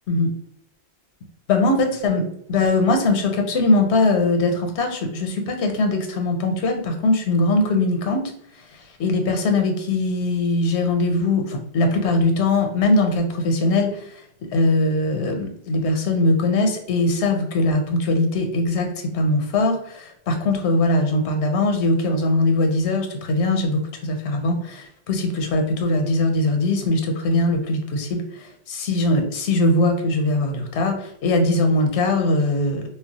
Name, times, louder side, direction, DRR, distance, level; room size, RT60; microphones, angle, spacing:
voice 1, 1.5-2.2 2.5-8.2 9.0-14.2 14.5-18.9 19.1-32.8, left 2 dB, 85° left, 4 dB, 0.9 m, -21 dB
2.2 x 2.0 x 3.8 m, 0.69 s
omnidirectional pair, 1.1 m